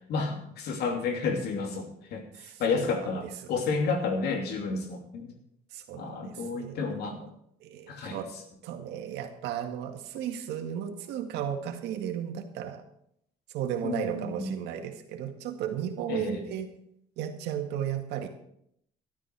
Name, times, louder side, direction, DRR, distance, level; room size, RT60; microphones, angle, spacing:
voice 1, 0.1-5.4 6.0-7.3 7.9-8.2 13.8-14.6 16.1-16.4, left 4 dB, 75° left, 4 dB, 2.8 m, -31 dB
voice 2, 2.3-3.1 5.7-6.8 7.6-8.3 8.6-12.8 13.5-16.7 17.2-18.3, right 9 dB, 85° right, 5 dB, 1.9 m, -34 dB
13.0 x 12.0 x 4.7 m, 0.73 s
cardioid pair, 110°, 17 cm